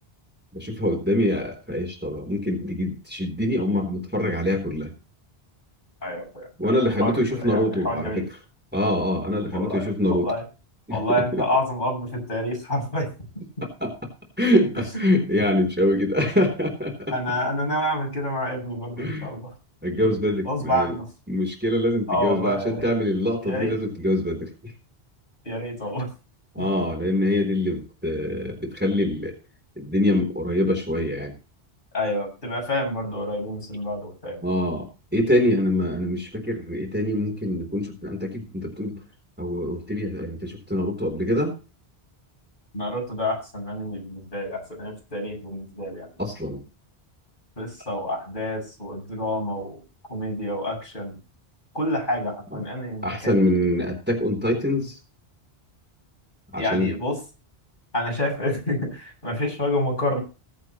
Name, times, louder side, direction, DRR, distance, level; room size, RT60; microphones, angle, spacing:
voice 1, 0.5-4.9 6.6-8.1 8.7-10.3 10.9-11.0 11.3-11.4 13.8-13.9 14.4-17.1 19.0-19.3 19.8-20.9 21.3-24.7 26.6-29.3 29.8-31.3 34.4-39.0 39.4-41.5 46.2-46.6 52.5-52.6 53.0-55.0 56.5-56.9, left 1 dB, 10° right, 1 dB, 3.8 m, -24 dB
voice 2, 6.0-6.5 7.0-8.2 9.4-10.4 10.9-13.1 17.1-19.5 20.4-21.1 22.1-22.9 23.4-23.8 25.4-26.1 26.6-26.7 31.9-34.4 42.7-46.1 47.6-49.8 50.1-51.2 51.7-53.5 56.6-57.2 57.9-60.2, left 1 dB, 50° left, -1 dB, 7.7 m, -28 dB
21.5 x 8.2 x 3.1 m, 0.32 s
omnidirectional pair, 1.1 m